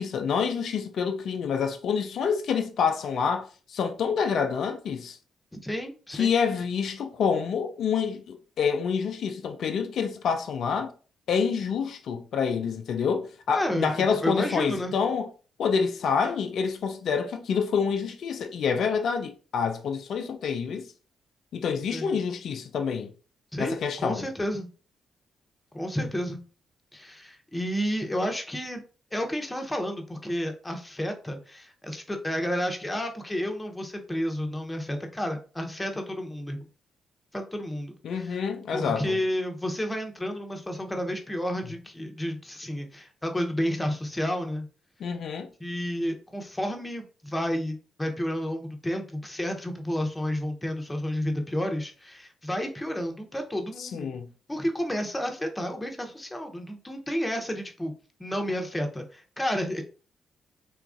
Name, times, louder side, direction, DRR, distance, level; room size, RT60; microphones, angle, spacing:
voice 1, 0.0-5.2 6.1-10.9 11.3-15.3 15.6-20.9 21.5-23.1 23.6-24.3 38.0-39.2 45.0-45.5 53.8-54.3, left 6 dB, 65° left, 0.4 m, -27 dB
voice 2, 5.6-6.3 13.5-14.9 21.9-22.1 23.5-24.7 25.7-26.4 26.9-28.8 29.1-36.7 37.3-38.4 38.7-44.7 45.6-54.1 54.5-57.9 58.2-59.8, equal, 15° left, 0.7 m, -31 dB
2.9 x 2.4 x 2.4 m
hypercardioid pair, 40°, 0 cm